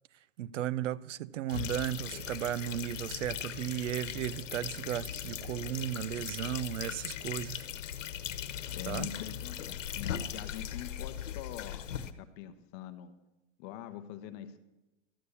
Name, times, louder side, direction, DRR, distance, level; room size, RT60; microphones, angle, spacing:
voice 1, 0.4-7.7 8.9-9.1, right 12 dB, 75° right, 0.6 m, -35 dB
sound 1, 1.5-12.1, left 10 dB, 90° left, 1.1 m, -39 dB
voice 2, 8.7-11.9 12.2-13.1 13.6-14.6, left 11 dB, 25° left, 0.8 m, -44 dB
13.0 x 8.4 x 6.9 m
supercardioid pair, 160°, 37 cm